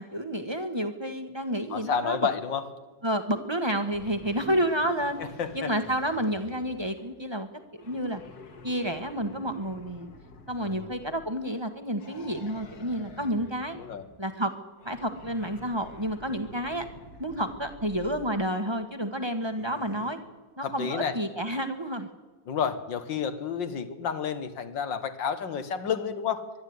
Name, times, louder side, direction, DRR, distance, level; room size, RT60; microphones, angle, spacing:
voice 1, 0.0-2.3 3.0-5.2 5.5-7.5 7.7-8.2 8.6-10.1 10.5-13.8 14.2-14.5 14.8-16.9 17.2-20.2 20.6-22.1, equal, 15° right, 8 dB, 1.2 m, -30 dB
voice 2, 1.7-2.6 5.2-5.7 10.6-10.9 13.8-14.0 20.6-21.2 22.5-26.5, left 7 dB, 75° left, 10 dB, 2.1 m, -30 dB
sound 1, 3.9-7.2 7.8-11.5 12.0-14.2 14.8-18.5 19.4-20.1, left 3 dB, 55° left, 2.1 m, -49 dB
24.0 x 11.5 x 9.6 m, 1.3 s
omnidirectional pair, 2.0 m